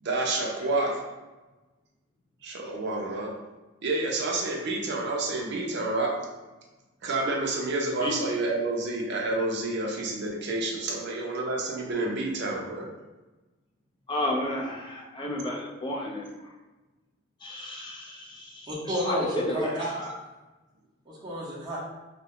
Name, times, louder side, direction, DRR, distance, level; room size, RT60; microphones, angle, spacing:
voice 1, 0.0-1.0 2.4-3.4 3.8-6.2 7.0-12.9, right 2 dB, 60° right, 0 dB, 0.5 m, -29 dB
voice 2, 14.1-16.6 17.4-18.7 19.0-20.2, left 1 dB, 25° left, -1 dB, 0.4 m, -32 dB
voice 3, 18.7-19.7 21.1-21.8, equal, 20° right, -7 dB, 0.7 m, -31 dB
2.3 x 2.1 x 3.5 m, 1.2 s
head